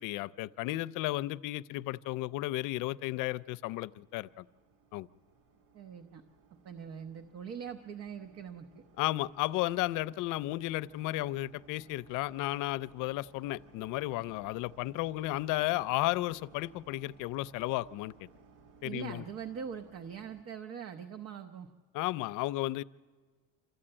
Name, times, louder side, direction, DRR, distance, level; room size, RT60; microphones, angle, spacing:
voice 1, 0.0-4.5 4.9-5.1 9.0-18.3 18.8-19.2 21.9-22.8, left 17 dB, 85° left, 17 dB, 0.5 m, -33 dB
sound 1, 3.0-20.4, right 4 dB, 90° right, 1.8 m, -60 dB
voice 2, 5.7-6.2 6.6-8.8 18.8-21.7, right 7 dB, 55° right, 7 dB, 1.0 m, -42 dB
26.5 x 14.0 x 8.8 m, 1.5 s
cardioid pair, 150°, 30 cm